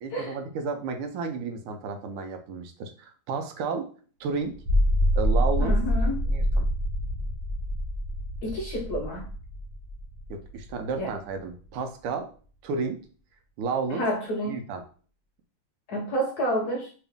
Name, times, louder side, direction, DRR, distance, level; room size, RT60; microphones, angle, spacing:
voice 1, 0.0-3.9 4.2-4.6 5.1-5.8 6.2-6.7 10.3-12.3 12.6-13.0 13.6-14.1 14.4-14.8, right 4 dB, 85° right, 6 dB, 1.6 m, -32 dB
sound 1, 4.5-11.0, equal, 45° right, 1.3 m, -26 dB
voice 2, 5.6-6.2 8.4-9.3 11.0-11.1 13.9-14.6 15.9-16.9, equal, 75° left, 0 dB, 0.9 m, -29 dB
3.5 x 2.9 x 3.5 m, 0.40 s
omnidirectional pair, 2.4 m